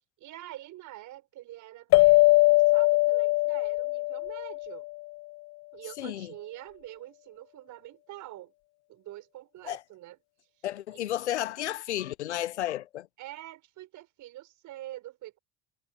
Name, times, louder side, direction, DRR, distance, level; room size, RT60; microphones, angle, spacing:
voice 1, 0.2-4.9 5.7-8.5 8.9-10.2 10.9-11.0 13.2-15.4, right 15 dB, 60° right, 5.8 m, -45 dB
sound 1, 1.9-4.9, left 20 dB, 55° left, 0.5 m, -21 dB
voice 2, 6.0-6.3 9.6-9.8 10.6-13.1, left 13 dB, 85° left, 0.8 m, -32 dB
hypercardioid pair, 55°, 34 cm